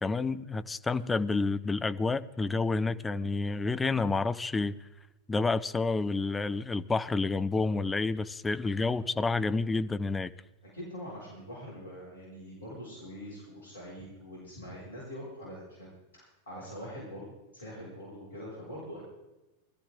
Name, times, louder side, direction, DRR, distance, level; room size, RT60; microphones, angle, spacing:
voice 1, 0.0-4.8 5.3-10.3, left 3 dB, 10° left, 13 dB, 0.6 m, -29 dB
voice 2, 10.6-17.3 17.5-19.0, equal, 70° left, -5 dB, 6.8 m, -44 dB
21.0 x 13.5 x 3.8 m, 1.1 s
figure-of-eight pair, 90°, 0 cm